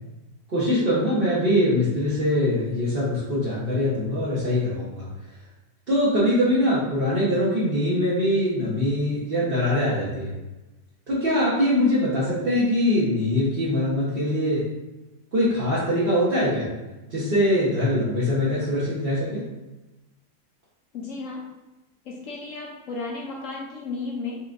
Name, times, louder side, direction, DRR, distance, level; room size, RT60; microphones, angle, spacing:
voice 1, 0.5-5.1 5.9-10.3 11.1-14.6 15.3-16.7 17.1-19.4, left 1 dB, 40° right, -9 dB, 1.1 m, -23 dB
voice 2, 20.9-21.4 22.1-24.4, left 3 dB, 65° left, -2 dB, 0.8 m, -33 dB
4.5 x 3.6 x 2.5 m, 1.1 s
omnidirectional pair, 1.9 m